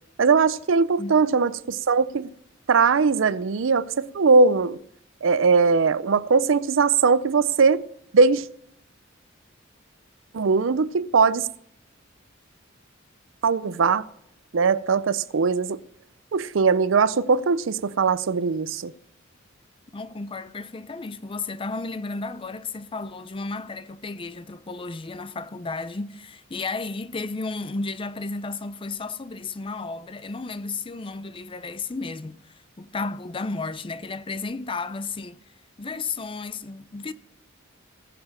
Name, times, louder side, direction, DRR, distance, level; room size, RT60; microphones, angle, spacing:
voice 1, 0.2-2.3 2.7-4.8 5.2-7.8 8.1-8.4 10.3-11.5 13.4-14.0 14.5-15.8 16.3-18.9, right 4 dB, 70° right, 0.5 m, -20 dB
voice 2, 1.0-1.5 19.9-35.4 35.8-37.1, left 3 dB, 25° left, 0.5 m, -33 dB
18.5 x 6.8 x 5.7 m
head